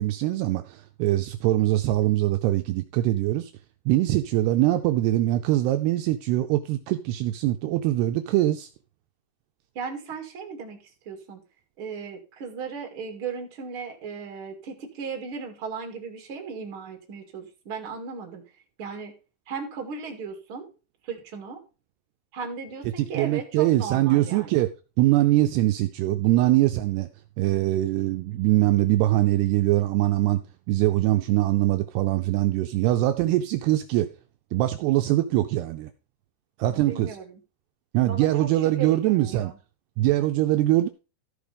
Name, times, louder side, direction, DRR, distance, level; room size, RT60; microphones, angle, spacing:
voice 1, 0.0-3.5 3.9-8.7 23.0-24.7 25.0-27.1 27.4-30.4 30.7-34.1 34.5-35.9 36.6-37.2 37.9-39.5 40.0-40.9, right 15 dB, 80° right, 7 dB, 2.5 m, -22 dB
voice 2, 9.7-10.8 11.1-11.4 11.8-18.4 18.8-19.1 19.5-20.7 21.0-21.6 22.3-24.6 36.6-37.2 38.0-38.3 38.8-39.6, right 5 dB, 40° right, 3 dB, 2.4 m, -36 dB
14.0 x 4.9 x 5.2 m, 0.33 s
omnidirectional pair, 5.0 m